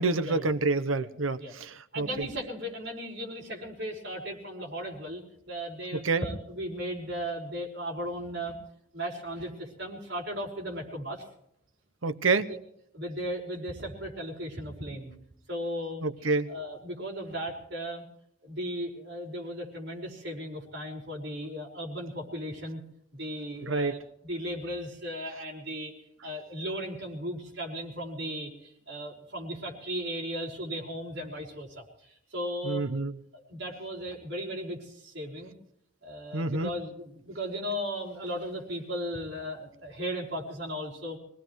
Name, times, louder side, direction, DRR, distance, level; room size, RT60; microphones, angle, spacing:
voice 1, 0.0-2.3 5.9-6.2 12.0-12.5 16.0-16.5 23.6-24.0 32.6-33.2 36.3-36.7, right 3 dB, 80° right, 12 dB, 0.9 m, -28 dB
voice 2, 1.9-8.6 8.9-11.3 12.5-12.6 12.9-15.1 15.5-16.1 16.5-18.0 18.4-22.8 23.1-32.8 33.3-35.5 36.0-41.2, equal, 55° right, -1 dB, 5.1 m, -36 dB
24.5 x 18.0 x 3.2 m, 0.76 s
head